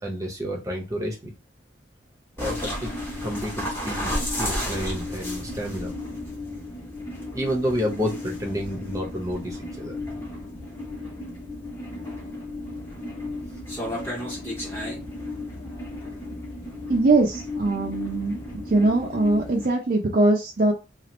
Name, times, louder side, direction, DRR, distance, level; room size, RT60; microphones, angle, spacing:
voice 1, 0.0-1.3 2.4-2.9 3.2-5.9 7.3-10.0, equal, 15° right, 0 dB, 0.7 m, -30 dB
sound 1, 2.4-19.7, left 1 dB, 10° left, 0.9 m, -33 dB
voice 2, 16.9-20.7, right 2 dB, 45° right, -1 dB, 0.5 m, -21 dB
2.9 x 2.4 x 3.0 m, 0.28 s
head